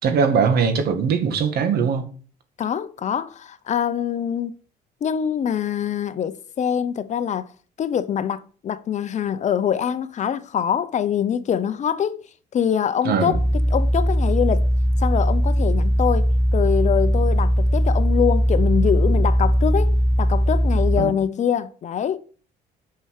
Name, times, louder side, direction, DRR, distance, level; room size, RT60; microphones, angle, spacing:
voice 1, 0.0-2.1 13.0-13.4 21.0-21.1, right 6 dB, 70° right, 2.0 m, -20 dB
voice 2, 2.6-4.5 5.0-7.5 7.8-12.3 12.5-13.4 13.7-14.6 15.0-22.2, left 8 dB, 45° left, 0.8 m, -24 dB
sound 1, 13.3-21.0, equal, ahead, 0.8 m, -19 dB
9.7 x 5.7 x 6.6 m
cardioid pair, 110°, 17 cm